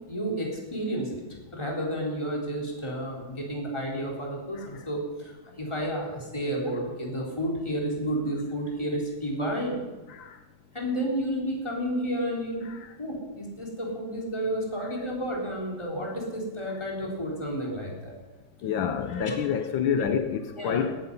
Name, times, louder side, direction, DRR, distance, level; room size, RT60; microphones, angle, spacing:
voice 1, 0.1-1.2 1.5-9.8 10.7-12.7 13.0-18.2 19.2-19.3 19.9-20.1 20.6-20.9, equal, 15° left, -2 dB, 4.1 m, -31 dB
voice 2, 10.1-10.4 12.6-13.0 14.8-14.9 18.6-21.0, left 8 dB, 80° left, 8 dB, 1.6 m, -29 dB
18.0 x 14.0 x 5.5 m, 1.2 s
omnidirectional pair, 2.1 m